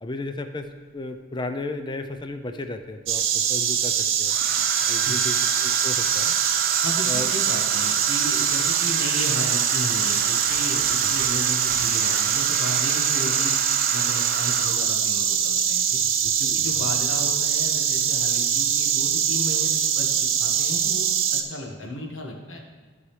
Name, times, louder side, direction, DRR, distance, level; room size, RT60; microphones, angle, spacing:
voice 1, 0.0-0.7 0.9-4.3 4.9-6.4 7.1-7.3 11.0-11.1 16.0-16.9 21.8-21.9, left 2 dB, 20° left, 7 dB, 0.4 m, -34 dB
Domestic sounds home sounds, 0.6-0.7 2.2-2.8 4.3-15.0 16.2-16.5 16.8-17.1, right 7 dB, 45° right, 0.5 m, -31 dB
Insect, 3.1-21.4, right 8 dB, 75° right, 0.8 m, -23 dB
voice 2, 6.8-13.6 13.9-16.0 16.4-22.6, left 1 dB, 70° left, 1 dB, 1.5 m, -34 dB
15.5 x 5.4 x 3.3 m, 1.5 s
head